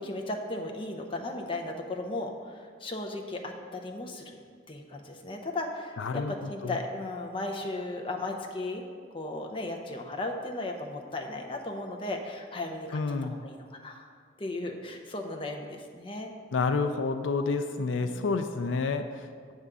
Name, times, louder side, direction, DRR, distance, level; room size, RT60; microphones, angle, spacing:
voice 1, 0.0-4.4 4.7-8.8 9.1-14.1 14.4-16.3 18.0-18.1, left 2 dB, 25° left, 2 dB, 0.6 m, -36 dB
voice 2, 6.0-6.8 12.9-13.4 16.5-19.5, left 4 dB, 80° left, 8 dB, 0.4 m, -29 dB
8.0 x 3.6 x 6.7 m, 2.1 s
head